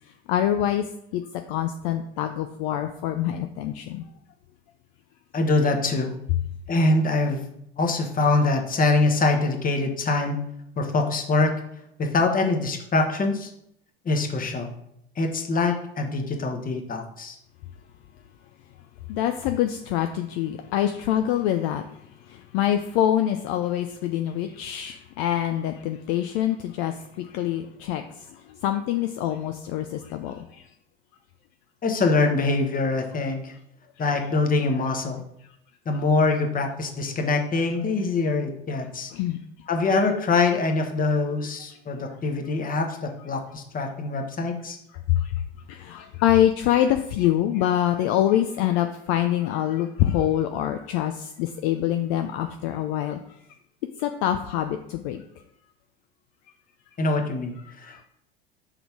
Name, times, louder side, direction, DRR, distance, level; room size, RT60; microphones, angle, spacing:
voice 1, 0.3-0.8 1.1-1.2 1.5-4.0 19.1-21.8 22.3-28.0 28.6-30.6 39.1-39.4 45.1-45.3 45.7-53.2 54.0-55.2 57.9-58.0, left 11 dB, 55° left, 7 dB, 0.5 m, -25 dB
voice 2, 5.3-6.1 6.7-7.4 7.8-10.4 10.8-11.5 12.0-13.5 14.0-14.7 15.2-17.4 31.8-33.5 34.0-35.2 35.8-39.1 39.7-44.8 57.0-58.1, left 3 dB, 25° left, 4 dB, 1.2 m, -24 dB
5.4 x 3.9 x 4.6 m, 0.77 s
hypercardioid pair, 80°, 31 cm